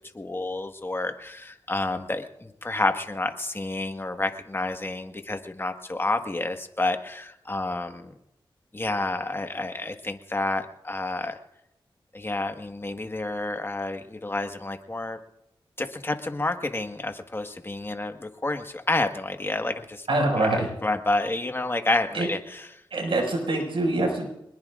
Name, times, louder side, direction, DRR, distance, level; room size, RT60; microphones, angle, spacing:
voice 1, 0.1-8.1 8.7-11.4 12.1-15.2 15.8-20.1 20.3-22.7, left 2 dB, 25° left, 6 dB, 1.5 m, -29 dB
voice 2, 20.1-20.7 22.1-22.3 22.9-24.3, right 2 dB, 75° right, 0 dB, 5.7 m, -24 dB
23.5 x 20.5 x 2.5 m, 0.81 s
cardioid pair, 60°, 9 cm